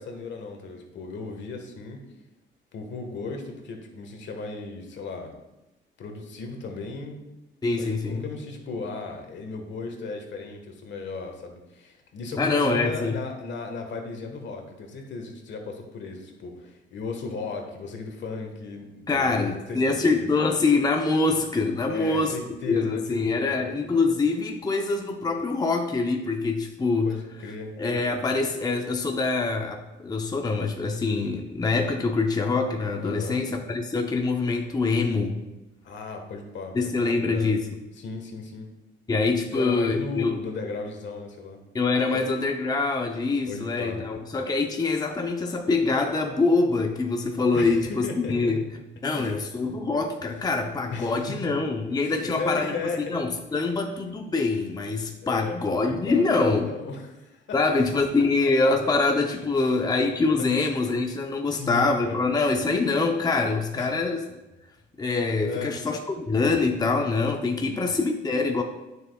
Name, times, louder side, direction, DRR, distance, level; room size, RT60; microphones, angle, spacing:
voice 1, 0.0-2.0 2.7-5.3 6.0-7.2 7.7-19.8 20.1-20.3 21.8-23.6 27.0-27.7 33.0-33.4 35.8-37.5 38.0-38.7 39.4-41.6 42.1-42.2 43.5-44.0 47.5-48.6 49.0-49.4 50.9-51.4 52.0-53.2 55.2-55.6 56.1-58.0 59.5-59.9 60.4-60.5 61.5-62.2 63.7-63.9 65.4-65.8 67.6-67.9, left 4 dB, 65° left, 4 dB, 1.4 m, -36 dB
voice 2, 7.6-8.2 12.4-13.2 19.1-22.4 22.7-27.1 27.8-35.4 36.7-37.7 39.1-40.4 41.7-48.6 49.0-56.7 57.5-64.2 65.0-66.0 66.3-68.6, left 3 dB, 20° left, 3 dB, 0.7 m, -24 dB
9.0 x 6.7 x 2.3 m, 1.0 s
cardioid pair, 90°, 20 cm